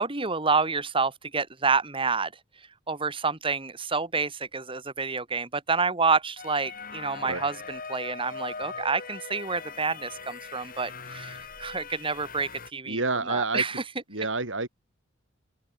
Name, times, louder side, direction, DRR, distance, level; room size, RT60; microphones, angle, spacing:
voice 1, 0.0-2.3 2.9-13.0 13.3-13.8, right 4 dB, 25° right, 2.2 m, -28 dB
sound 1, 6.4-12.7, left 5 dB, 45° left, 6.6 m, -40 dB
voice 2, 12.9-13.6 14.1-14.7, right 3 dB, 70° right, 4.9 m, -28 dB
open air
head